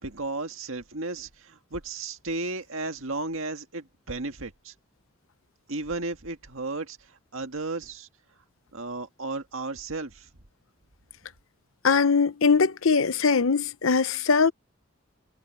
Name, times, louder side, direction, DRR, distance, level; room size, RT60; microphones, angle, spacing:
voice 1, 0.0-4.7 5.7-8.1 8.7-10.3, right 3 dB, 75° right, 1.8 m, -34 dB
voice 2, 11.8-14.5, left 5 dB, 80° left, 0.8 m, -21 dB
head